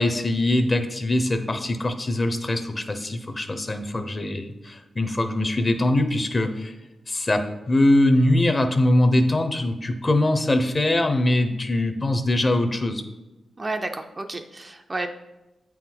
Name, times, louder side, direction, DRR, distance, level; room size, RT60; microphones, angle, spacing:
voice 1, 0.0-6.7 7.1-13.0, left 1 dB, 30° left, 7 dB, 0.7 m, -22 dB
voice 2, 13.6-15.1, right 2 dB, 25° right, 6 dB, 0.5 m, -31 dB
8.1 x 4.6 x 3.9 m, 0.99 s
wide cardioid pair, 100°, 0 cm